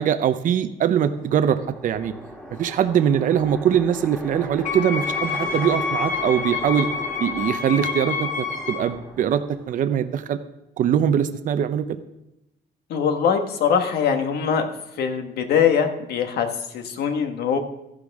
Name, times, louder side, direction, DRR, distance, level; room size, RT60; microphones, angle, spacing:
voice 1, 0.0-2.1 2.6-6.9 7.2-10.4 10.8-12.0, right 9 dB, 50° right, 9 dB, 0.7 m, -22 dB
sound 1, 1.0-10.0, equal, 5° left, 1.9 m, -38 dB
Wind instrument woodwind instrument, 4.6-8.9, left 5 dB, 50° left, 1.9 m, -28 dB
voice 2, 12.9-14.7 15.0-17.6, left 7 dB, 70° left, 6 dB, 1.5 m, -22 dB
13.5 x 11.5 x 3.6 m, 0.90 s
cardioid pair, 110°, 17 cm